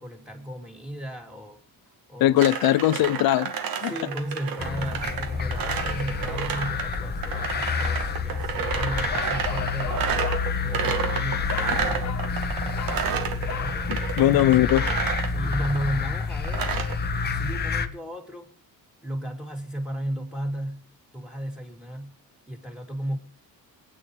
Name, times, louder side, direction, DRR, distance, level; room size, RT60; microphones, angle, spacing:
voice 1, 0.0-1.6 2.1-2.4 3.8-10.3 10.6-14.6 15.3-16.7 17.2-18.5 19.0-20.9 21.1-22.2 22.5-23.2, right 1 dB, ahead, 2.6 m, -34 dB
voice 2, 2.2-3.5 3.8-3.9 13.9-14.8, left 14 dB, 75° left, 0.6 m, -20 dB
sound 1, 2.4-17.0, right 7 dB, 70° right, 2.1 m, -31 dB
sound 2, 4.6-17.9, left 5 dB, 25° left, 0.9 m, -29 dB
Bark, 9.1-10.5 11.5-11.8 12.0-12.3 12.7-13.0 13.5-13.8, left 9 dB, 50° left, 1.4 m, -36 dB
27.0 x 9.6 x 3.1 m
cardioid pair, 175°, 36 cm